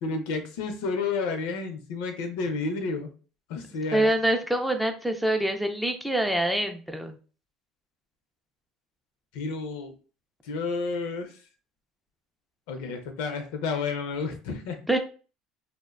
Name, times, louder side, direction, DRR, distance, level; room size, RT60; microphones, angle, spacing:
voice 1, 0.0-3.1 3.5-4.1 9.3-9.9 10.4-11.4 12.7-14.8, left 4 dB, 80° left, 6 dB, 0.5 m, -31 dB
voice 2, 3.9-7.2 14.9-15.0, right 1 dB, ahead, 5 dB, 0.3 m, -25 dB
2.5 x 2.1 x 2.4 m, 0.36 s
cardioid pair, 130°, 0 cm